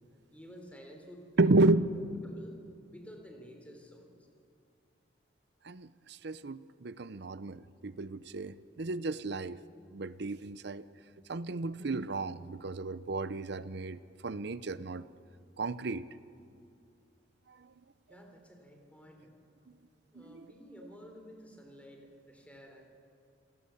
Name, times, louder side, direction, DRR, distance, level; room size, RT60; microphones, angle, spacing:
voice 1, 0.3-1.8 2.2-2.6 2.9-4.1 18.1-19.4 20.1-22.9, equal, 10° left, 2 dB, 3.6 m, -52 dB
voice 2, 1.4-2.0 5.6-9.6 9.9-10.8 11.3-15.1 15.6-16.0 20.2-20.4, right 2 dB, 60° right, 16 dB, 0.7 m, -32 dB
27.0 x 18.5 x 7.1 m, 2.5 s
head